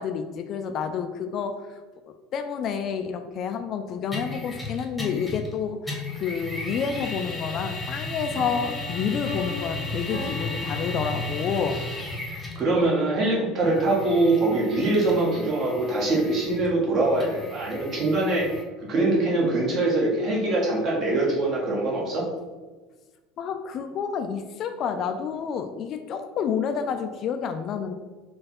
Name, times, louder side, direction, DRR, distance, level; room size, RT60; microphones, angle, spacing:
voice 1, 0.0-1.8 2.0-11.8 23.4-27.9, left 6 dB, 45° left, 7 dB, 0.3 m, -29 dB
sound 1, 4.1-5.6 5.9-12.7 13.6-18.6, left 2 dB, 5° left, 1.1 m, -35 dB
sound 2, 8.3-12.3, left 2 dB, 65° right, 1.4 m, -38 dB
voice 2, 12.3-18.4 18.9-22.2, right 2 dB, 40° right, -3 dB, 1.3 m, -23 dB
4.1 x 2.3 x 4.3 m, 1.3 s
figure-of-eight pair, 65°, 0 cm